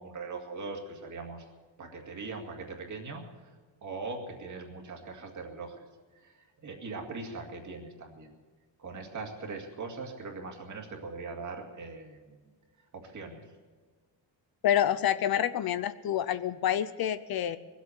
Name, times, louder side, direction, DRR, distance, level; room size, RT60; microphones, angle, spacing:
voice 1, 0.0-1.4 1.8-3.2 3.8-5.9 6.2-6.3 6.6-8.3 8.8-12.4 12.9-13.4, right 3 dB, 40° right, 2 dB, 2.2 m, -40 dB
voice 2, 14.6-17.6, left 10 dB, 55° left, 14 dB, 0.6 m, -28 dB
21.0 x 8.4 x 7.9 m, 1.4 s
cardioid pair, 175°, 44 cm